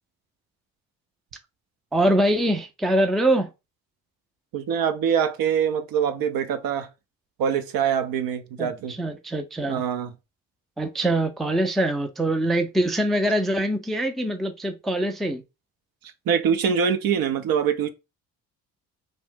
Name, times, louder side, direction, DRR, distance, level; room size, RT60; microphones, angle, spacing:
voice 1, 1.9-3.5 8.6-9.8 10.8-15.4, right 1 dB, ahead, 0.4 m, -23 dB
voice 2, 4.5-6.9 7.4-8.9 9.7-10.1 16.3-17.9, right 7 dB, 60° right, 0.6 m, -24 dB
2.6 x 2.1 x 3.2 m
hypercardioid pair, 50°, 40 cm